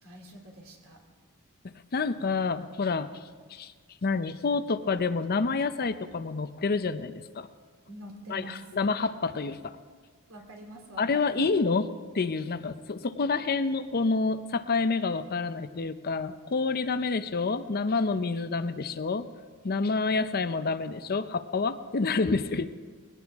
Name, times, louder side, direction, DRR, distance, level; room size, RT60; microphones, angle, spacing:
voice 1, 0.0-1.0 7.9-8.6 10.3-11.5, right 1 dB, 65° right, 1 dB, 2.9 m, -46 dB
voice 2, 1.9-3.2 3.5-3.7 4.0-7.5 8.3-9.8 11.0-11.9 12.1-19.3 19.6-22.7, left 4 dB, 45° left, 11 dB, 0.6 m, -28 dB
21.0 x 17.0 x 3.6 m, 1.5 s
head